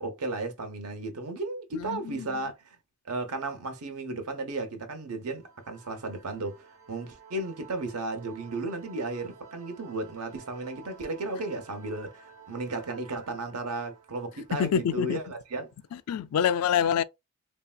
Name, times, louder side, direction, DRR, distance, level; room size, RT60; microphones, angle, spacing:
voice 1, 0.0-2.8 3.0-15.7, right 2 dB, 85° right, 0.9 m, -34 dB
voice 2, 1.7-2.3 14.6-15.2 16.1-17.0, left 8 dB, 85° left, 0.3 m, -26 dB
sound 1, 5.3-15.7, right 5 dB, 65° right, 1.1 m, -53 dB
3.2 x 2.7 x 2.2 m
head